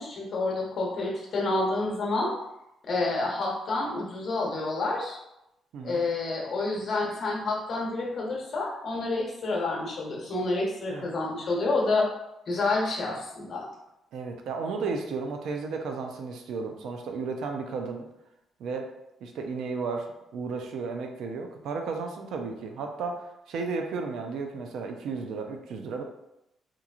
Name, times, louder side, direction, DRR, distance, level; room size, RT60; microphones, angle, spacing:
voice 1, 0.0-2.3 2.9-5.2 5.8-12.1 12.5-13.7, left 2 dB, 55° left, -2 dB, 0.8 m, -28 dB
voice 2, 5.7-6.0 10.9-11.1 14.1-18.1 18.6-18.9 19.2-26.0, right 4 dB, 75° right, 4 dB, 0.4 m, -34 dB
3.0 x 2.4 x 2.3 m, 0.85 s
cardioid pair, 90°, 0 cm